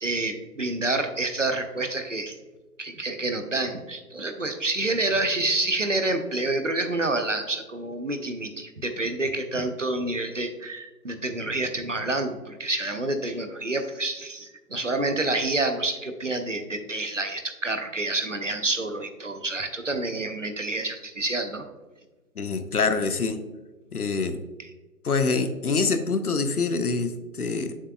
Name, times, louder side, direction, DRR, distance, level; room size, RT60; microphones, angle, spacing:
voice 1, 0.0-2.4 2.8-21.7 24.6-24.7, right 2 dB, 50° right, 7 dB, 0.6 m, -28 dB
voice 2, 22.4-23.4 23.9-24.4 25.0-27.8, left 4 dB, 65° left, 10 dB, 0.7 m, -25 dB
7.3 x 5.6 x 2.3 m, 1.2 s
figure-of-eight pair, 170°, 48 cm